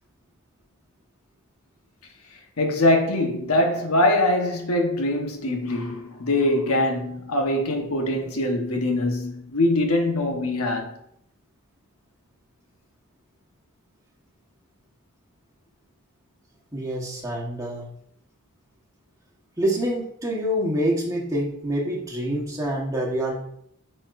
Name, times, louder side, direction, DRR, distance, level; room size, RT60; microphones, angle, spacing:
voice 1, 2.6-10.9, left 1 dB, 75° left, 1.2 m, -23 dB
voice 2, 16.7-17.9 19.6-23.4, equal, 15° right, 1.3 m, -26 dB
8.7 x 4.4 x 2.6 m
head